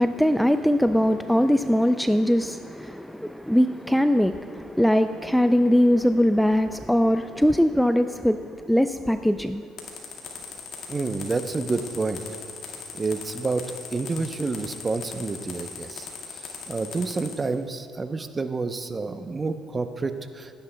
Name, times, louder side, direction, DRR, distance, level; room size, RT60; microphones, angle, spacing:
voice 1, 0.0-9.6, equal, ahead, 0.3 m, -21 dB
sound 1, 9.8-17.3, left 6 dB, 65° left, 1.7 m, -38 dB
voice 2, 10.9-12.2 12.9-13.6 13.9-20.5, right 3 dB, 30° right, 0.6 m, -29 dB
15.0 x 9.9 x 2.2 m
supercardioid pair, 75°, 0 cm